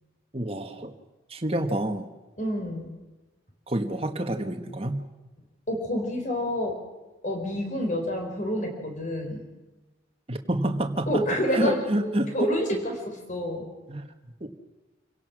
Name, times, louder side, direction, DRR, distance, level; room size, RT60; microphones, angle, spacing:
voice 1, 0.3-0.9 1.3-2.1 3.7-5.0 10.3-11.2 11.5-12.3 13.9-14.1 14.4-14.5, right 1 dB, 30° right, 5 dB, 1.6 m, -28 dB
voice 2, 2.4-2.9 5.7-6.7 7.2-9.5 11.1-12.1 12.3-13.6, equal, 40° left, 2 dB, 5.0 m, -28 dB
27.5 x 17.0 x 6.3 m, 1.1 s
head